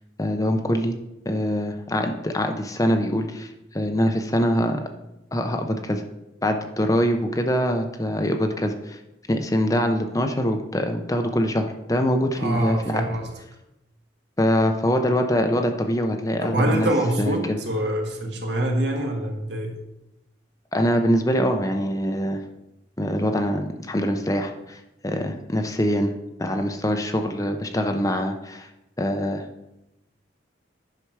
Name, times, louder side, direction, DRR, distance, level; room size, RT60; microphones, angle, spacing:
voice 1, 0.2-0.9 1.3-4.8 5.3-6.0 6.4-9.0 9.3-13.0 14.4-16.9 17.2-17.6 20.7-22.4 23.0-26.1 26.4-28.7 29.0-29.4, equal, 15° left, 5 dB, 0.6 m, -24 dB
voice 2, 12.4-13.3 16.4-19.7, right 1 dB, 60° right, 1 dB, 1.8 m, -25 dB
10.0 x 5.9 x 4.7 m, 0.91 s
head